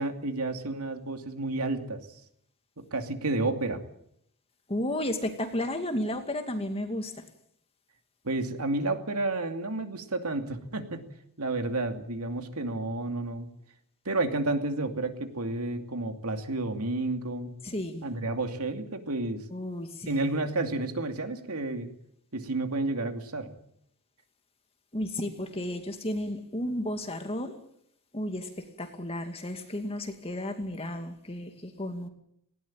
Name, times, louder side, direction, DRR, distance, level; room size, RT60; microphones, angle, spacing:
voice 1, 0.0-2.0 2.8-3.8 8.2-11.1 11.4-13.5 14.0-17.5 18.0-19.4 20.1-21.9 22.3-23.5, right 2 dB, 85° right, 6 dB, 2.7 m, -31 dB
voice 2, 4.7-7.2 17.6-18.0 19.5-20.2 24.9-27.5 28.1-28.5 28.8-32.1, left 1 dB, 25° left, 6 dB, 2.4 m, -33 dB
19.0 x 17.5 x 9.0 m, 0.71 s
head